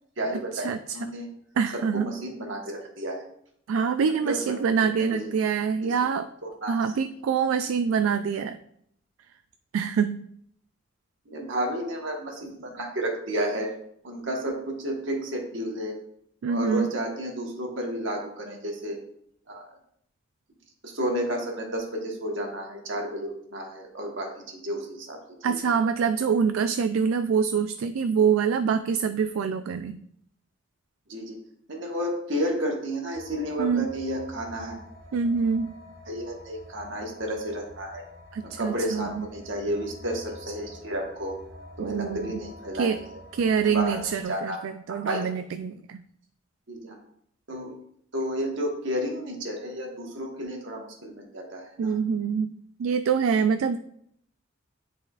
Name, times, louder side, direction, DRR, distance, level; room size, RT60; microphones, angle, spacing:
voice 1, 0.2-1.3 1.7-3.3 4.2-4.6 5.0-5.3 5.8-6.0 6.4-6.9 11.2-13.7 14.0-16.0 16.5-19.0 19.5-19.7 20.8-25.8 31.1-31.4 31.7-34.8 36.1-38.0 38.4-41.4 41.8-43.0 43.6-44.6 44.9-45.3 46.7-47.0 47.5-47.7 48.1-52.0, equal, 65° right, 1 dB, 1.3 m, -32 dB
voice 2, 1.6-2.1 3.7-6.3 6.7-8.6 9.7-10.2 16.4-16.9 25.4-30.0 33.6-33.9 35.1-35.7 38.3-39.3 41.8-42.4 42.8-43.0 43.3-46.0 51.8-52.5 52.8-53.8, right 6 dB, 85° right, 10 dB, 0.3 m, -25 dB
sound 1, 33.1-44.2, left 1 dB, 50° right, 0.7 m, -47 dB
10.0 x 4.3 x 2.4 m, 0.71 s
head